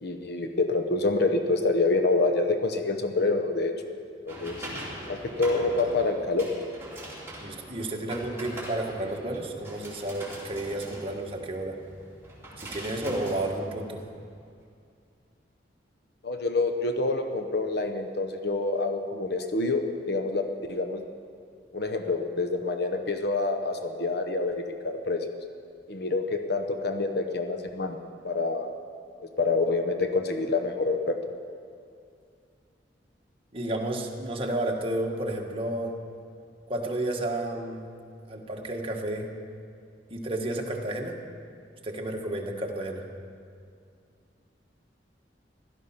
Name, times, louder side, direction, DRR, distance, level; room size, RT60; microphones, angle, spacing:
voice 1, 0.0-3.7 4.2-4.7 5.1-6.5 16.2-21.0 21.7-25.2 25.9-28.0 28.2-28.7 29.2-31.2, left 3 dB, 60° left, 6 dB, 0.9 m, -27 dB
sound 1, 4.3-14.3, right 1 dB, 15° right, 3.2 m, -42 dB
voice 2, 7.4-11.8 12.6-14.0 33.5-35.9 36.7-37.9 38.3-39.3 40.1-41.2 41.8-43.1, right 1 dB, 30° right, 1 dB, 1.5 m, -31 dB
16.0 x 12.5 x 5.7 m, 2.3 s
head